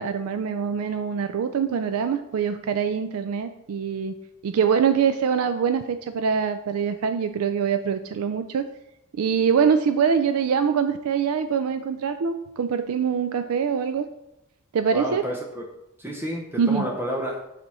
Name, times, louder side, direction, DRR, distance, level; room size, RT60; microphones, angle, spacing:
voice 1, 0.0-4.1 4.4-8.7 9.1-14.1 14.7-15.2 16.6-16.9, right 6 dB, 85° right, 9 dB, 0.4 m, -24 dB
voice 2, 14.9-15.6 16.0-17.4, equal, 10° right, 0 dB, 0.6 m, -30 dB
6.7 x 4.4 x 4.1 m, 0.87 s
head